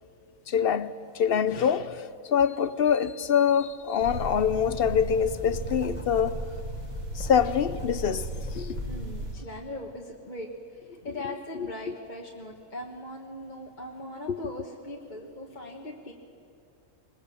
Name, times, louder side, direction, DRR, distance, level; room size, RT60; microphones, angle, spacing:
voice 1, 0.5-6.4 7.1-8.9 11.5-11.9 14.3-14.5, left 7 dB, 55° left, 0.7 m, -25 dB
Writing, 3.6-3.7 4.2-8.6, left 1 dB, 10° left, 1.0 m, -45 dB
sound 1, 4.0-9.3, right 1 dB, 70° right, 3.6 m, -35 dB
voice 2, 8.8-16.1, left 1 dB, 35° left, 1.5 m, -40 dB
21.5 x 21.0 x 7.1 m
omnidirectional pair, 1.5 m